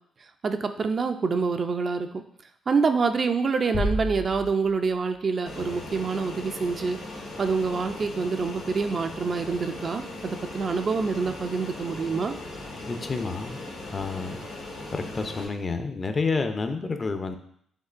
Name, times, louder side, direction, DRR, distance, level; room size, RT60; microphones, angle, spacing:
voice 1, 0.4-2.2 2.7-7.0 7.4-12.4, right 4 dB, 40° right, 7 dB, 0.3 m, -26 dB
sound 1, 3.7-5.3, left 1 dB, 65° left, 1.0 m, -31 dB
Fixed-wing aircraft airplane, 5.5-15.5, left 2 dB, 85° left, 1.7 m, -39 dB
voice 2, 12.8-14.4 14.9-17.4, left 4 dB, 30° left, 7 dB, 0.5 m, -30 dB
5.3 x 3.5 x 2.5 m, 0.66 s
cardioid pair, 90°, 0 cm